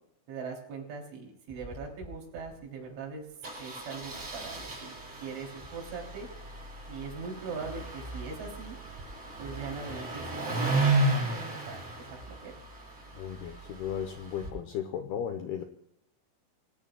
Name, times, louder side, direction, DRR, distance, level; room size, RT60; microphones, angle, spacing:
voice 1, 0.3-3.3 3.6-4.9 5.2-6.3 6.9-8.8 9.4-12.6, right 5 dB, 70° right, 0 dB, 5.6 m, -41 dB
Engine starting, 1.5-1.8 2.0-2.1 2.4-2.5 3.4-14.5, right 2 dB, 30° right, 7.4 m, -34 dB
voice 2, 13.1-15.6, left 9 dB, 80° left, 6 dB, 2.4 m, -35 dB
28.0 x 17.5 x 2.3 m, 0.81 s
omnidirectional pair, 5.7 m